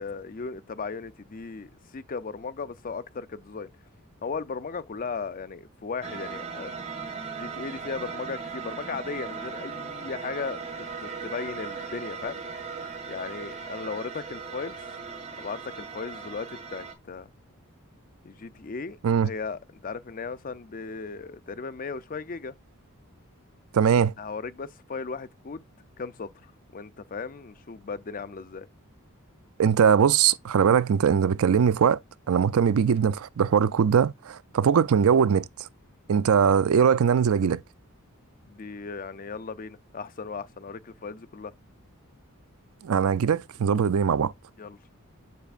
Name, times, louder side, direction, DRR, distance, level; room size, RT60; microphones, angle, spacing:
voice 1, 0.0-3.7 4.2-6.7 7.4-10.6 11.0-12.4 13.1-14.8 15.4-17.3 18.2-22.6 24.2-25.7 26.0-28.7 38.5-41.5 44.6-44.8, left 4 dB, 40° left, 0.5 m, -36 dB
sound 1, 6.0-16.9, right 5 dB, 30° right, 1.9 m, -38 dB
voice 2, 23.7-24.1 29.6-32.0 32.3-35.7 36.1-37.6 42.8-44.3, right 7 dB, 70° right, 0.4 m, -21 dB
7.2 x 6.8 x 2.4 m
head